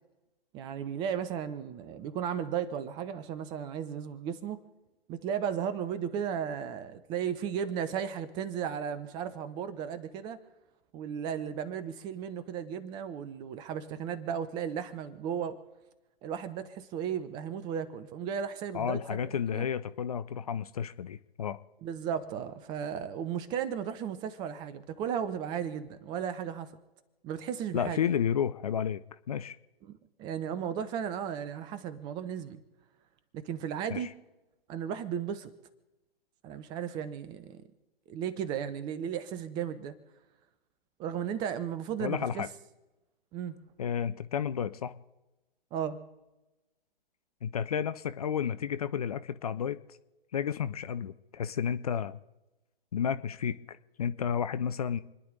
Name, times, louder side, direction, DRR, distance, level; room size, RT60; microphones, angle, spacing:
voice 1, 0.5-4.6 5.1-10.4 10.9-15.6 16.2-19.7 21.8-26.8 27.2-28.0 29.9-32.6 33.3-34.1 34.7-35.5 36.4-37.6 38.1-39.9 41.0-42.4 43.3-43.6 45.7-46.0, right 8 dB, 15° right, 13 dB, 0.7 m, -35 dB
voice 2, 18.7-21.6 27.7-29.0 29.3-29.5 33.9-34.1 42.0-42.5 43.8-45.0 47.4-49.8 50.3-52.2 52.9-55.0, left 8 dB, 40° left, 13 dB, 0.6 m, -31 dB
29.0 x 10.5 x 3.9 m, 1.0 s
figure-of-eight pair, 125°, 30 cm